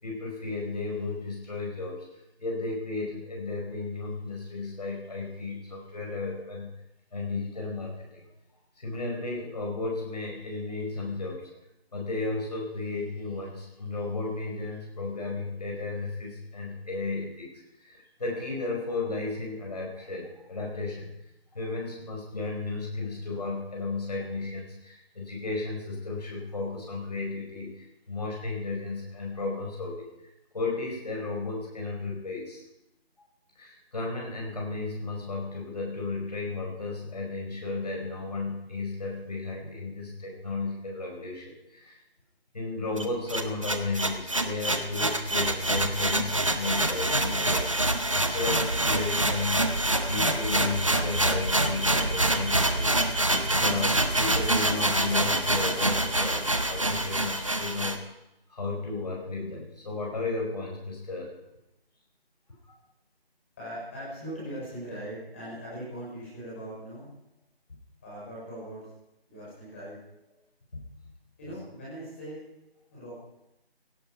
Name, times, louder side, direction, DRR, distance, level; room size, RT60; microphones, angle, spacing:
voice 1, 0.0-2.0 2.4-6.7 7.1-8.2 8.8-11.5 11.9-17.5 17.8-21.1 21.5-30.1 30.5-32.6 33.6-42.0 42.5-49.6 50.1-52.9 53.5-58.0 58.5-61.3 70.7-70.9, left 3 dB, 40° left, 0 dB, 4.9 m, -34 dB
sound 1, 43.0-58.0, right 1 dB, 30° right, 0.9 m, -26 dB
voice 2, 63.6-67.1 68.0-68.8 69.3-70.0 71.4-72.4 72.9-73.1, right 1 dB, 10° left, -7 dB, 5.6 m, -40 dB
17.0 x 14.0 x 5.5 m, 0.87 s
figure-of-eight pair, 175°, 31 cm